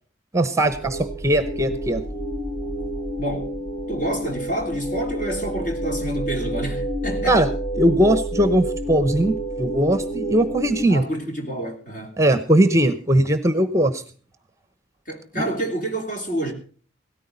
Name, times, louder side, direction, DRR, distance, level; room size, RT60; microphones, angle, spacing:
voice 1, 0.3-2.0 7.3-7.5 7.8-11.0 12.2-14.0 15.4-15.5, right 1 dB, 15° right, 0.8 m, -19 dB
sound 1, 0.6-10.8, right 1 dB, 25° left, 1.2 m, -29 dB
voice 2, 3.2-3.5 3.9-7.4 10.9-12.2 15.0-16.5, right 1 dB, 45° left, 3.3 m, -28 dB
17.0 x 14.0 x 4.0 m
head